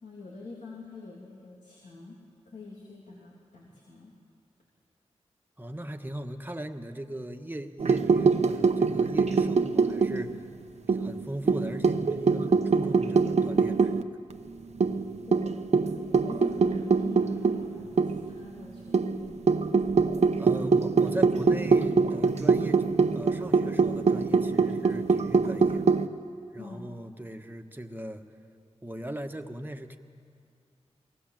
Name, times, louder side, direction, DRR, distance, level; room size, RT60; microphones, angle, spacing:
voice 1, 0.0-2.2 2.4-4.1 15.2-15.6 16.0-19.5 26.6-26.9, left 3 dB, 85° left, -3 dB, 3.1 m, -45 dB
voice 2, 5.6-10.3 10.9-14.0 20.4-25.8 26.5-28.2 28.8-30.0, right 1 dB, 15° right, 5 dB, 1.4 m, -38 dB
sound 1, 7.8-10.5 10.9-14.0 14.3-14.4 14.8-18.3 18.9-26.1, right 4 dB, 70° right, 0.8 m, -24 dB
23.0 x 18.5 x 7.6 m, 2.4 s
cardioid pair, 50°, 12 cm